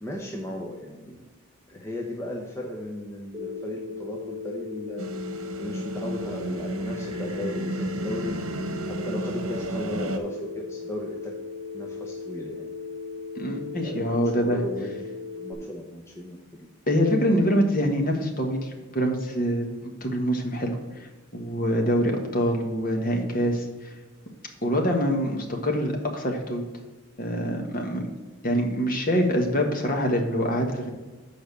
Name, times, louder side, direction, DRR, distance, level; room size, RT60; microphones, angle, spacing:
voice 1, 0.0-1.3 1.7-5.1 5.6-8.3 8.9-11.4 11.7-12.7 13.8-15.1 15.4-16.4, left 1 dB, 10° left, -1 dB, 0.8 m, -36 dB
Telephone, 3.3-15.5, left 4 dB, 10° right, 1.0 m, -37 dB
sound 1, 5.0-10.2, right 2 dB, 75° right, 1.0 m, -32 dB
voice 2, 13.4-14.6 16.9-23.9 24.6-26.6 27.2-28.1 28.4-30.9, equal, 40° left, 3 dB, 1.4 m, -25 dB
7.2 x 5.0 x 6.8 m, 1.3 s
head